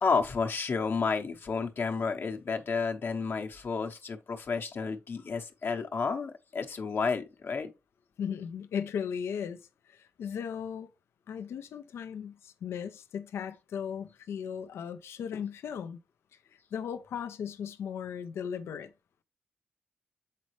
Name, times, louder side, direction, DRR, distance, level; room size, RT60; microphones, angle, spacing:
voice 1, 0.0-7.7, left 5 dB, 60° left, 0.9 m, -31 dB
voice 2, 8.2-10.9 11.3-16.0 16.3-18.9, left 7 dB, 90° left, 0.5 m, -37 dB
7.5 x 4.1 x 3.1 m
cardioid pair, 75°, 4 cm